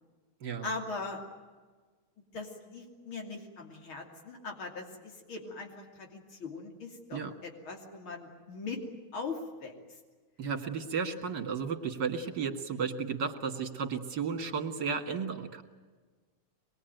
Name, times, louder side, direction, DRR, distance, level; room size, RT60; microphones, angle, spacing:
voice 1, 0.6-1.2 2.3-8.8 9.1-9.7, left 4 dB, 85° left, 2 dB, 3.6 m, -40 dB
voice 2, 10.4-15.6, right 6 dB, 60° right, 5 dB, 2.6 m, -33 dB
24.0 x 22.0 x 9.3 m, 1.4 s
omnidirectional pair, 2.2 m